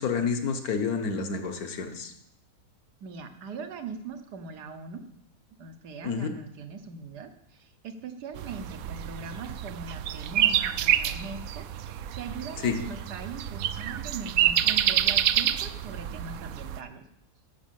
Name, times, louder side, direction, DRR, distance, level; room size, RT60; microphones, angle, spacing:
voice 1, 0.0-2.1 6.0-6.3 12.6-12.8, left 5 dB, 70° left, 6 dB, 1.7 m, -29 dB
voice 2, 3.0-5.0 5.6-17.0, right 4 dB, 90° right, 7 dB, 1.6 m, -41 dB
sound 1, 8.4-16.8, right 11 dB, 70° right, 0.9 m, -28 dB
13.0 x 6.2 x 7.6 m, 0.78 s
omnidirectional pair, 1.7 m